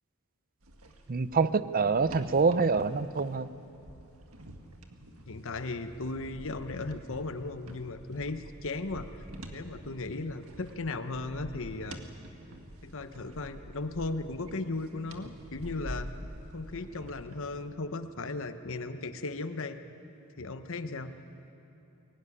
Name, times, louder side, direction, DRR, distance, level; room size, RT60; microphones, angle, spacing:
sound 1, 0.6-17.7, right 1 dB, 70° right, 1.9 m, -47 dB
voice 1, 1.1-3.5, right 4 dB, 40° right, 14 dB, 0.6 m, -26 dB
voice 2, 5.3-9.1 9.5-12.0 12.8-16.1 16.5-19.8 20.4-21.1, left 3 dB, 65° left, 9 dB, 1.1 m, -36 dB
23.0 x 17.5 x 10.0 m, 2.8 s
head